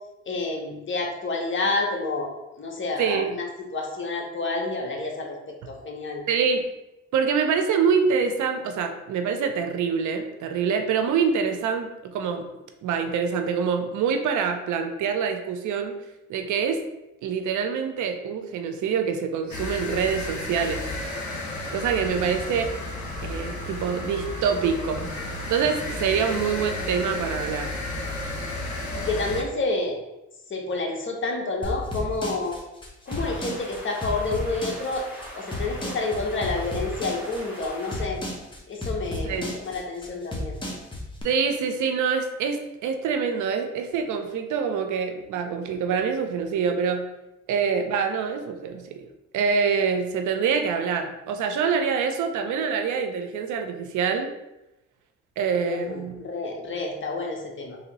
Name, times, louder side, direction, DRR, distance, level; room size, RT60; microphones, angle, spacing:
voice 1, 0.3-2.3 2.6-5.4 5.7-6.2 28.9-30.0 30.5-32.6 33.1-35.1 35.4-38.2 38.7-40.6 55.7-57.8, left 3 dB, 40° left, 0 dB, 1.0 m, -29 dB
voice 2, 3.0-3.4 6.3-6.6 7.1-12.5 12.8-15.9 16.3-16.8 17.2-20.8 21.7-22.7 23.2-25.1 25.5-27.8 39.2-39.5 41.2-47.0 47.5-49.0 49.3-54.3 55.4-56.1, right 6 dB, 75° right, 6 dB, 0.6 m, -25 dB
sound 1, 19.5-29.4, left 2 dB, 70° left, 1.1 m, -33 dB
sound 2, 31.6-41.2, left 1 dB, 15° left, 1.0 m, -32 dB
sound 3, 33.1-38.1, equal, 5° right, 1.3 m, -42 dB
3.2 x 2.8 x 4.0 m, 0.95 s
cardioid pair, 90°, 30 cm